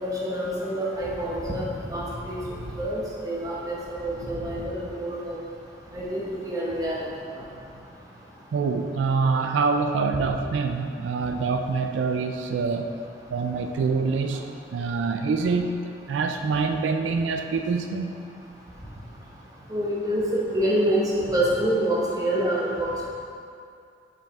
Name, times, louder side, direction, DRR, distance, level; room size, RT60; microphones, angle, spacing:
voice 1, 0.0-2.4 2.8-5.4 5.9-7.1 19.7-20.2 20.5-23.1, right 1 dB, 20° right, -6 dB, 1.1 m, -27 dB
voice 2, 8.5-13.0 13.3-14.4 14.7-18.2, right 4 dB, 90° right, 6 dB, 0.3 m, -25 dB
6.0 x 5.0 x 3.5 m, 2.4 s
head